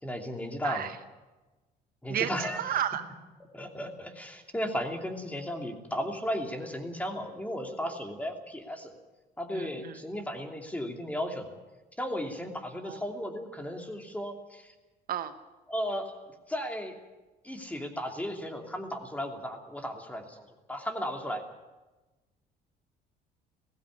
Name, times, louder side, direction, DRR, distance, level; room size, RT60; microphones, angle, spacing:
voice 1, 0.0-0.9 2.0-2.6 3.5-8.9 9.4-11.6 12.0-14.7 15.7-16.9 17.4-21.4, equal, 10° left, 4 dB, 2.8 m, -35 dB
voice 2, 0.6-1.0 2.1-3.0 9.5-10.0 12.8-13.0 15.1-15.4, right 10 dB, 60° right, 10 dB, 1.0 m, -32 dB
17.5 x 15.5 x 9.9 m, 1.2 s
cardioid pair, 110°, 17 cm